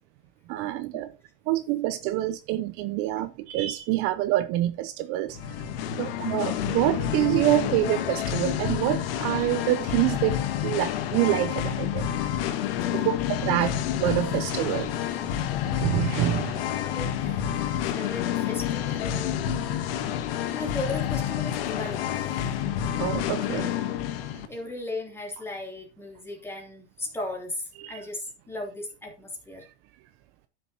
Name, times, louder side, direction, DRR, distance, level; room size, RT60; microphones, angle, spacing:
voice 1, 0.5-1.1 1.5-5.4 6.0-10.4 10.6-12.0 12.9-13.7 14.0-14.9 15.4-16.6 23.0-23.7 27.8-28.0, right 14 dB, 50° right, 0.7 m, -26 dB
Singing, 5.3-24.5, left 10 dB, 70° left, 1.3 m, -29 dB
voice 2, 13.4-14.0 16.8-19.4 20.5-22.1 23.5-23.6 23.9-24.1 24.4-29.6, left 2 dB, 10° left, 2.9 m, -37 dB
12.0 x 6.7 x 2.9 m
supercardioid pair, 145°, 30 cm